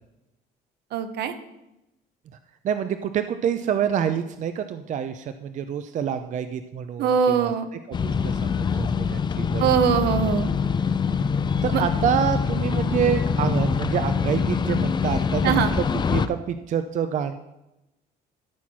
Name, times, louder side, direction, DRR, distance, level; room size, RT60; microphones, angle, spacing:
voice 1, 0.9-1.3 7.0-7.7 9.6-10.5 11.7-11.8 15.4-15.7, right 7 dB, 75° right, 9 dB, 0.9 m, -22 dB
voice 2, 2.6-7.5 8.0-9.9 11.6-17.3, right 8 dB, 45° right, 9 dB, 0.5 m, -27 dB
sound 1, 7.9-16.3, left 6 dB, 25° left, 0.4 m, -24 dB
12.5 x 4.5 x 6.0 m, 0.93 s
cardioid pair, 110°, 17 cm